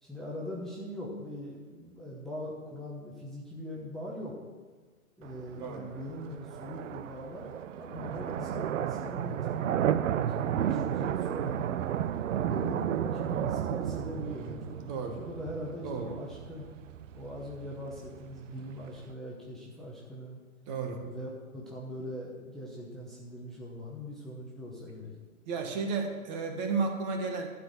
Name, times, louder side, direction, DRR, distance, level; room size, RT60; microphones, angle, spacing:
voice 1, 0.0-4.4 5.2-9.7 10.1-11.8 12.3-16.7 17.1-20.4 21.0-25.1, left 1 dB, ahead, -6 dB, 1.0 m, -41 dB
sound 1, 5.2-19.1, right 10 dB, 60° right, 0.6 m, -33 dB
voice 2, 14.9-15.2 15.8-16.1 20.7-21.0 25.5-27.5, right 4 dB, 30° right, 4 dB, 1.4 m, -32 dB
11.5 x 4.9 x 8.1 m, 1.4 s
hypercardioid pair, 135°, 44 cm